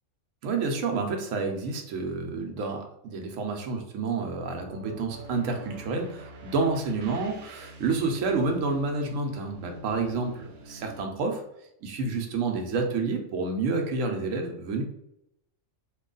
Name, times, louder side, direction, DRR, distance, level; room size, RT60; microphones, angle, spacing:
voice 1, 0.4-11.4 11.8-14.8, right 4 dB, 80° right, 3 dB, 1.0 m, -29 dB
sound 1, 4.5-11.0, right 1 dB, 60° right, 0.7 m, -45 dB
3.0 x 2.3 x 3.8 m, 0.79 s
omnidirectional pair, 1.3 m